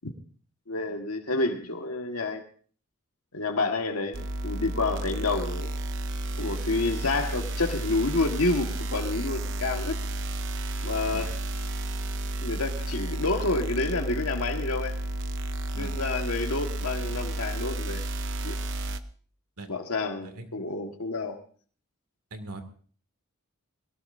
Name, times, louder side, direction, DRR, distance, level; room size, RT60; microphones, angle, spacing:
voice 1, 0.7-2.5 3.3-5.7 6.4-10.0 10.8-11.4 12.4-14.9 15.8-18.0 18.4-18.5 19.7-21.4, left 3 dB, 75° left, 3 dB, 1.6 m, -29 dB
sound 1, 4.1-19.0, right 1 dB, 55° right, 0.8 m, -32 dB
voice 2, 22.3-22.6, right 2 dB, 85° right, 7 dB, 2.3 m, -41 dB
21.0 x 18.0 x 2.6 m, 0.43 s
head